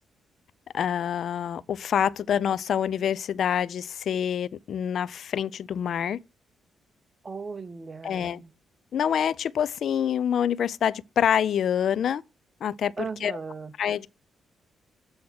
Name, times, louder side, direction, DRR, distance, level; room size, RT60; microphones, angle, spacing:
voice 1, 0.7-6.2 8.0-8.4 8.9-12.2 12.6-13.4 13.8-14.1, left 9 dB, 70° left, 0.4 m, -26 dB
voice 2, 7.2-8.5 13.0-13.7, right 4 dB, 35° right, 0.8 m, -37 dB
7.7 x 3.6 x 6.1 m
cardioid pair, 70°, 0 cm